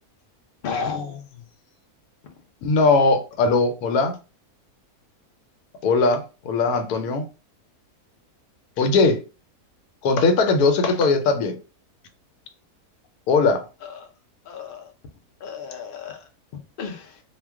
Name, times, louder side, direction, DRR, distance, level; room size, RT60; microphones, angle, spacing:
voice 1, 0.6-1.5 13.8-14.1 14.5-14.9 15.4-17.2, left 5 dB, 60° left, 0.5 m, -33 dB
voice 2, 2.6-4.1 5.8-7.3 8.8-9.2 10.0-11.6 13.3-13.6, left 3 dB, 85° left, 1.1 m, -19 dB
2.4 x 2.2 x 3.4 m
omnidirectional pair, 1.6 m